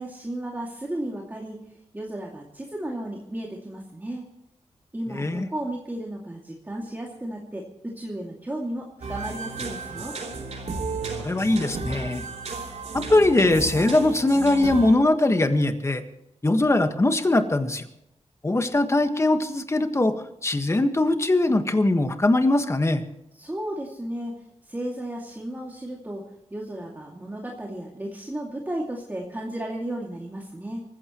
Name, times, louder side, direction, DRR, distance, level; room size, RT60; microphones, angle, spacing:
voice 1, 0.0-1.6 1.9-4.2 4.9-10.1 23.3-24.3 24.7-26.2 26.5-30.8, right 1 dB, 15° right, -2 dB, 2.5 m, -34 dB
voice 2, 5.1-5.5 11.2-12.2 12.9-16.0 16.4-17.8 18.4-20.1 20.4-23.0, left 2 dB, 25° left, 7 dB, 1.6 m, -21 dB
sound 1, 9.0-14.9, right 3 dB, 75° right, 3.4 m, -33 dB
26.5 x 15.0 x 3.1 m, 0.81 s
wide cardioid pair, 115°, 12 cm